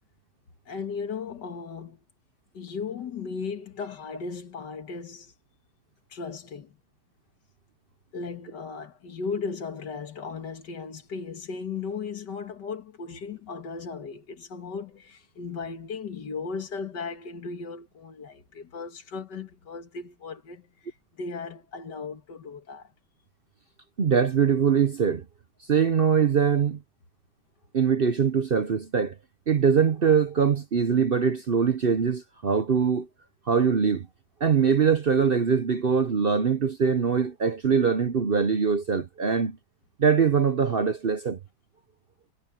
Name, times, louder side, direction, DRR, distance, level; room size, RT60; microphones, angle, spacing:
voice 1, 0.7-2.0 2.5-5.3 6.1-6.8 8.1-22.9, left 5 dB, 90° left, 2.4 m, -36 dB
voice 2, 24.0-25.2 25.7-26.8 27.7-29.2 29.5-33.1 33.5-34.1 34.4-39.6 40.0-41.4, right 6 dB, 50° right, 0.7 m, -22 dB
omnidirectional pair, 1.8 m